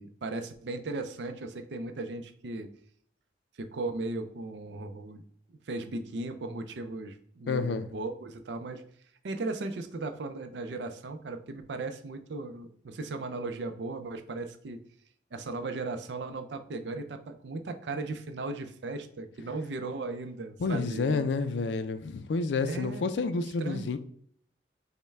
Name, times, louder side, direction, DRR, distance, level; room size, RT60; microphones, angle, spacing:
voice 1, 0.0-2.7 3.6-5.2 5.7-8.8 9.2-14.8 15.3-21.3 22.6-23.9, right 3 dB, 75° right, 8 dB, 0.5 m, -37 dB
voice 2, 7.5-7.9 20.6-24.0, left 4 dB, 80° left, 11 dB, 0.4 m, -29 dB
5.3 x 2.2 x 3.3 m, 0.64 s
head